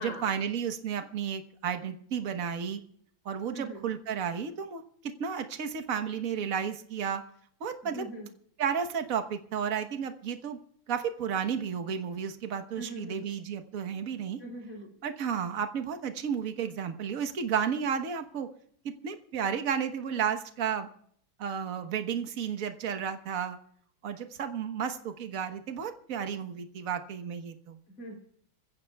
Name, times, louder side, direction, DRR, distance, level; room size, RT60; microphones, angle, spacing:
voice 1, 0.0-2.8 3.2-7.2 7.6-8.0 8.6-10.6 10.9-14.4 15.0-18.5 18.8-20.9 21.4-23.6 24.0-27.8, right 7 dB, 45° right, 7 dB, 1.4 m, -32 dB
voice 2, 3.5-3.9 7.8-8.3 12.8-13.2 14.4-14.9 27.9-28.2, right 1 dB, 60° left, -1 dB, 4.1 m, -41 dB
27.0 x 15.5 x 2.3 m, 0.64 s
omnidirectional pair, 2.4 m